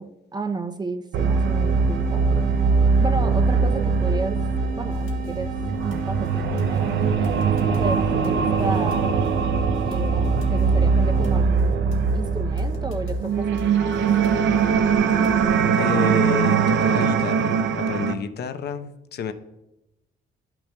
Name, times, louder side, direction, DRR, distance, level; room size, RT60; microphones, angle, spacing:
voice 1, 0.0-2.6 3.0-4.4 4.7-5.5 5.8-9.1 9.8-11.9 12.1-13.6 13.9-14.5, right 3 dB, 20° right, 7 dB, 0.5 m, -33 dB
sound 1, 1.1-11.5, right 1 dB, 45° right, 2.1 m, -35 dB
sound 2, 1.1-18.1, right 5 dB, 70° right, 0.6 m, -21 dB
sound 3, 4.9-15.6, left 2 dB, 80° left, 1.4 m, -40 dB
voice 2, 15.8-19.3, left 6 dB, 55° left, 10 dB, 0.6 m, -30 dB
11.5 x 5.9 x 2.2 m, 0.96 s
cardioid pair, 90°, 20 cm